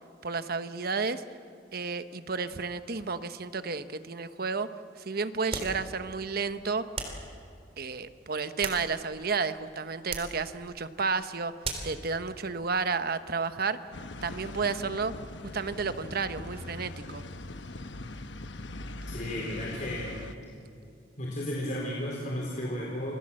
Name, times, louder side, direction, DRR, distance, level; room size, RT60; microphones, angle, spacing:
voice 1, 0.2-1.2 1.7-4.7 5.0-6.8 7.8-11.5 11.8-13.8 14.2-15.1 15.5-17.2, right 4 dB, 55° right, 11 dB, 1.0 m, -31 dB
sound 1, 5.5-5.8 6.9-7.3 8.3-9.2 10.1-10.4 11.6-12.0, right 4 dB, 35° right, 3.6 m, -36 dB
sound 2, 13.9-20.4, left 2 dB, 70° left, 1.2 m, -41 dB
voice 2, 19.0-20.2 21.2-23.1, left 1 dB, 45° left, -3 dB, 4.2 m, -34 dB
28.0 x 21.5 x 7.7 m, 2.5 s
head